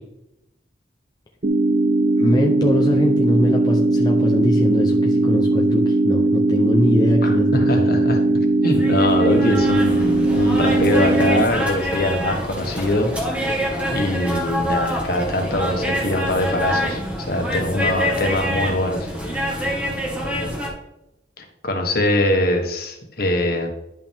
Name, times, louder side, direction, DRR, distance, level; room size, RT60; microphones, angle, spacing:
sound 1, 1.4-11.4, right 2 dB, 45° right, 0.7 m, -19 dB
voice 1, 2.2-7.9, left 1 dB, 20° left, 0 dB, 0.6 m, -22 dB
voice 2, 7.2-8.2 8.6-17.0 17.3-19.1 21.4-23.7, left 1 dB, 55° left, 3 dB, 1.5 m, -22 dB
sound 2, 8.6-20.7, equal, 5° right, 1.5 m, -26 dB
10.5 x 5.4 x 3.5 m, 0.86 s
head